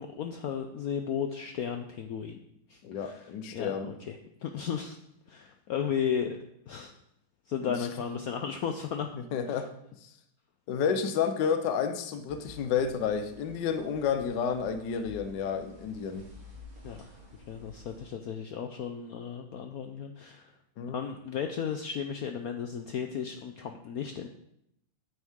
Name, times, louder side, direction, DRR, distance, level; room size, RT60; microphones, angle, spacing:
voice 1, 0.0-2.4 2.7-4.2 4.4-5.0 5.3-6.4 6.7-6.9 7.5-9.1 9.5-9.6 16.8-17.0 17.5-20.5 20.9-24.3, left 7 dB, 85° left, 5 dB, 0.8 m, -34 dB
voice 2, 2.8-3.9 7.6-7.7 9.1-9.7 10.7-16.3 20.8-21.0, left 7 dB, 65° left, 8 dB, 1.3 m, -30 dB
sound 1, 12.3-18.1, left 2 dB, 85° right, 3.1 m, -51 dB
9.2 x 9.1 x 3.6 m, 0.77 s
omnidirectional pair, 2.3 m